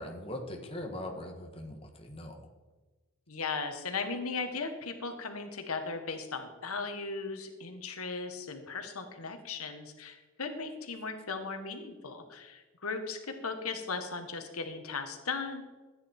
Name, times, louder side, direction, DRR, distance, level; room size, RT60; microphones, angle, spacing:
voice 1, 0.0-2.4, left 1 dB, 25° left, 2 dB, 1.5 m, -40 dB
voice 2, 3.3-15.6, left 4 dB, 85° left, 6 dB, 1.6 m, -37 dB
14.0 x 9.5 x 4.5 m, 1.2 s
head